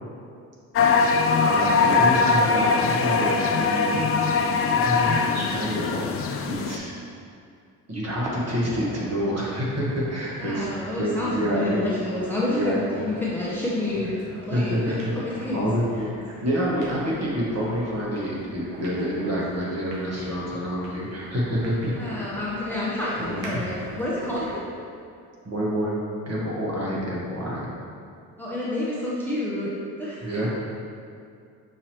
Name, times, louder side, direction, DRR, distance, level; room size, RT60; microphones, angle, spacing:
sound 1, 0.7-6.8, left 4 dB, 35° left, 0.4 m, -21 dB
voice 1, 1.4-4.1 4.8-6.9 7.9-11.8 12.4-13.1 14.0-14.1 14.5-21.9 22.2-22.3 23.2-23.5 25.4-26.0 26.2-27.7 30.2-30.5, equal, 35° right, -6 dB, 1.5 m, -28 dB
sound 2, 8.2-24.7, right 1 dB, 70° right, 1.0 m, -42 dB
voice 2, 10.4-14.1 14.5-15.7 22.0-24.7 28.4-29.7 30.0-30.5, left 2 dB, 5° left, -7 dB, 0.9 m, -29 dB
6.2 x 2.9 x 3.0 m, 2.4 s
hypercardioid pair, 55°, 43 cm